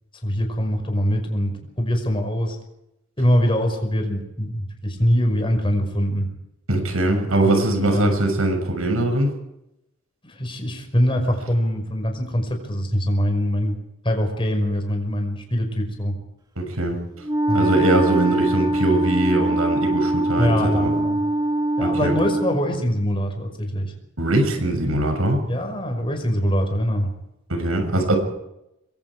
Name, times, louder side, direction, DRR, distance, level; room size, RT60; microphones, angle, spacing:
voice 1, 0.2-2.6 3.2-6.3 7.4-8.1 10.2-13.8 14.0-16.1 17.5-17.7 20.4-21.2 21.8-23.9 25.4-27.1, equal, 25° left, 4 dB, 5.6 m, -23 dB
voice 2, 6.7-9.3 16.6-17.0 17.5-20.9 21.8-22.1 24.2-25.4 27.5-28.2, right 2 dB, 85° right, 5 dB, 6.7 m, -21 dB
Wind instrument woodwind instrument, 17.2-22.6, right 1 dB, 20° right, 1.5 m, -22 dB
27.0 x 23.0 x 4.9 m, 0.86 s
head